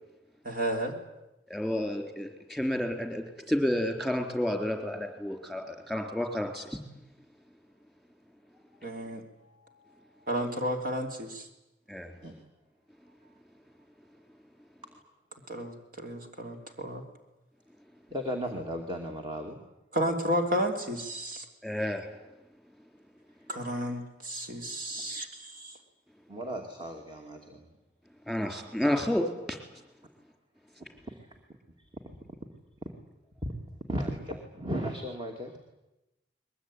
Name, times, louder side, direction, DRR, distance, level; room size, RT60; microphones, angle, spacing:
voice 1, 0.4-0.9 8.8-9.2 10.3-11.5 15.5-17.0 19.9-21.4 23.5-25.8, equal, 50° right, 4 dB, 3.3 m, -32 dB
voice 2, 1.5-6.8 11.9-12.1 21.6-22.1 28.3-29.6, left 1 dB, ahead, 4 dB, 3.9 m, -30 dB
voice 3, 9.4-10.3 12.2-12.3 16.2-16.3 18.1-19.6 25.0-25.2 26.3-27.6 31.0-31.3 33.4-33.5 33.9-35.6, equal, 25° right, 3 dB, 2.5 m, -36 dB
22.0 x 21.5 x 10.0 m, 0.97 s
head